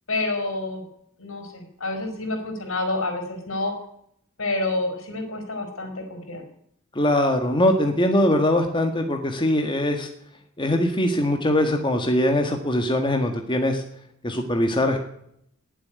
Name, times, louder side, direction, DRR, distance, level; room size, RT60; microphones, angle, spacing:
voice 1, 0.1-0.9 1.2-3.7 4.4-6.4, left 2 dB, 75° left, 6 dB, 5.1 m, -28 dB
voice 2, 6.9-10.1 10.6-13.8 14.2-15.0, left 1 dB, 25° left, 4 dB, 1.7 m, -22 dB
20.0 x 7.7 x 9.4 m, 0.72 s
head